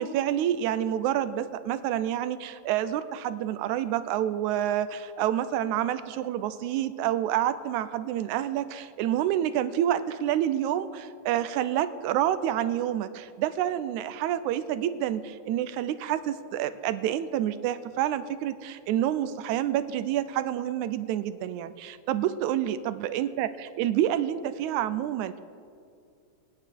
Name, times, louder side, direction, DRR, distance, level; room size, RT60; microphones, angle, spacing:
voice 1, 0.0-25.4, right 11 dB, 85° right, 13 dB, 2.0 m, -28 dB
24.5 x 9.4 x 4.5 m, 2.4 s
omnidirectional pair, 3.4 m